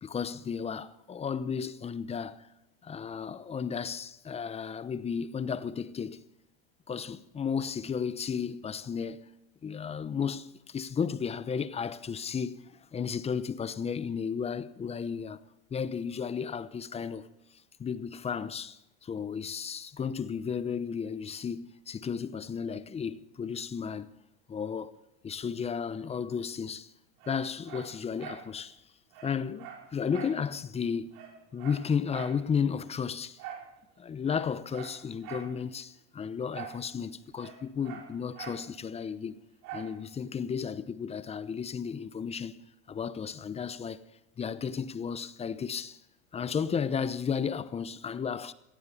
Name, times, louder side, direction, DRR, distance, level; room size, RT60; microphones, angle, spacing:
voice 1, 0.0-2.5 2.8-6.2 6.9-9.3 9.6-15.4 15.7-17.3 17.8-24.1 24.5-24.9 25.2-26.9 27.3-28.8 29.2-31.2 31.5-33.4 34.0-39.4 39.7-42.6 42.9-44.0 44.4-46.0 46.3-48.5, left 6 dB, 15° left, 0.8 m, -33 dB
Dog, 27.2-28.5 28.8-28.9 29.1-30.4 30.7-30.8 31.1-32.4 33.4-33.7 34.2-35.5 36.5-36.8 37.1-38.7 39.6-40.0 40.4-40.5, right 8 dB, 60° right, 5.5 m, -44 dB
16.5 x 15.5 x 5.4 m
supercardioid pair, 120°, 35 cm